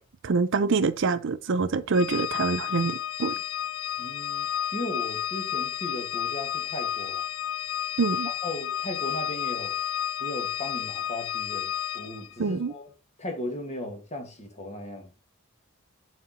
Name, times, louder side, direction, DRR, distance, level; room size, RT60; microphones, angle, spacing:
voice 1, 0.2-3.3 8.0-8.3 12.4-12.7, right 4 dB, 60° right, 0.5 m, -25 dB
Organ, 1.9-12.3, left 10 dB, 90° left, 0.5 m, -31 dB
voice 2, 4.0-7.2 8.0-8.1 8.4-9.8 10.2-12.9 13.2-15.1, left 1 dB, 35° left, 1.9 m, -37 dB
7.5 x 4.2 x 4.2 m
head